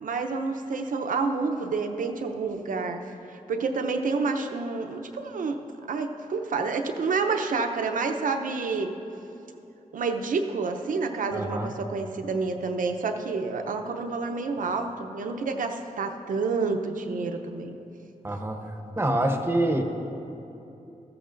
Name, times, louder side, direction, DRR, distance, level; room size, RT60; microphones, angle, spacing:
voice 1, 0.0-3.0 3.3-5.6 5.9-8.9 9.9-17.8, right 4 dB, 80° right, 6 dB, 0.7 m, -29 dB
voice 2, 11.3-11.7 18.2-18.7 19.0-19.8, right 1 dB, 15° right, 5 dB, 0.8 m, -26 dB
15.0 x 13.5 x 2.6 m, 2.9 s
wide cardioid pair, 110°, 14 cm